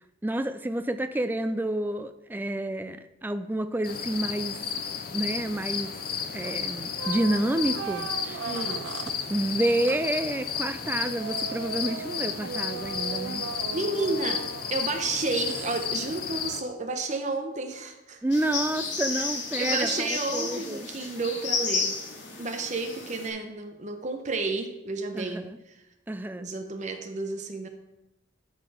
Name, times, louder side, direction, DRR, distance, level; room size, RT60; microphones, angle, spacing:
voice 1, 0.2-4.6 5.1-5.9 6.3-8.4 9.3-13.4 18.2-20.9 25.1-25.6 26.1-26.5, right 1 dB, 10° right, 10 dB, 0.3 m, -29 dB
sound 1, 3.8-16.6, left 7 dB, 55° left, 0.6 m, -33 dB
sound 2, 6.4-6.7 7.0-9.2 9.9-10.1 10.8-15.0 15.4-15.9, right 7 dB, 85° right, 0.4 m, -38 dB
voice 2, 8.5-8.9 13.7-14.4 14.7-18.2 19.1-19.2 19.6-21.9 22.4-25.8 26.4-27.7, right 3 dB, 40° right, 6 dB, 0.9 m, -31 dB
sound 3, 18.3-23.3, left 4 dB, 80° left, 2.3 m, -32 dB
12.0 x 4.2 x 4.9 m, 0.94 s
head